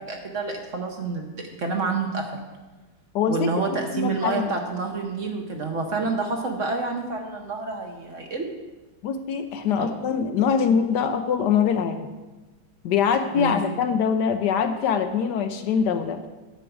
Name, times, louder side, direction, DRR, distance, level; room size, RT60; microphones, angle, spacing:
voice 1, 0.0-2.3 3.3-8.5 9.8-9.9 13.3-13.6, right 3 dB, 50° right, 3 dB, 1.0 m, -28 dB
voice 2, 3.1-3.5 3.9-4.5 9.0-12.1 12.8-16.2, left 7 dB, 75° left, 8 dB, 1.1 m, -23 dB
9.9 x 7.5 x 4.6 m, 1.2 s
omnidirectional pair, 2.0 m